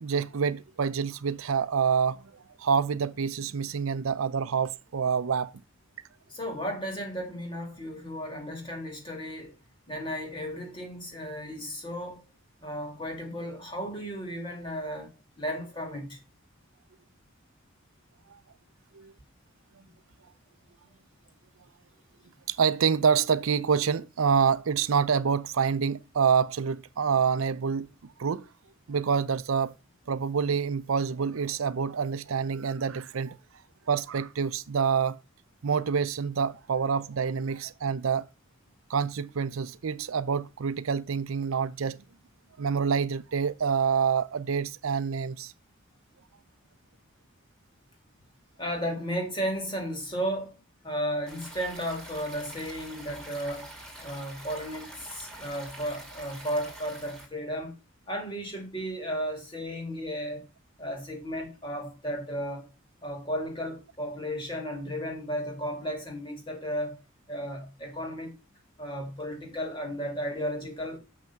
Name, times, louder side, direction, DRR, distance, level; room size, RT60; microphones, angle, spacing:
voice 1, 0.0-2.2 2.6-5.5 18.9-19.1 22.5-27.9 28.2-28.5 28.9-29.7 30.1-33.4 33.9-35.2 35.6-38.3 38.9-42.0 42.6-45.5, right 6 dB, 85° right, 0.5 m, -27 dB
voice 2, 6.3-9.5 9.9-12.2 12.6-16.2 48.6-50.6 50.8-53.7 54.0-57.7 58.1-60.4 60.8-62.7 63.0-67.0 67.3-68.3 68.8-71.0, equal, 25° left, 2.8 m, -34 dB
Stream, 51.3-57.3, right 1 dB, 5° left, 2.4 m, -45 dB
6.7 x 5.9 x 5.8 m
head